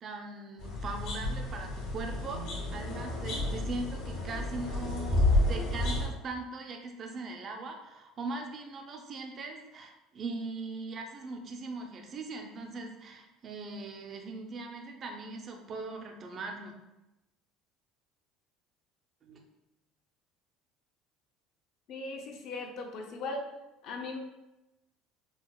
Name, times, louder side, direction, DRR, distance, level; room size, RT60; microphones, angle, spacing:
voice 1, 0.0-2.4 2.7-16.8 19.2-19.4, right 3 dB, 30° right, 3 dB, 0.3 m, -40 dB
sound 1, 0.6-6.1, left 1 dB, 75° left, 1.2 m, -30 dB
voice 2, 21.9-23.5 23.8-24.2, left 2 dB, 45° left, 3 dB, 0.4 m, -38 dB
4.9 x 2.0 x 2.2 m, 0.96 s
cardioid pair, 170°, 0 cm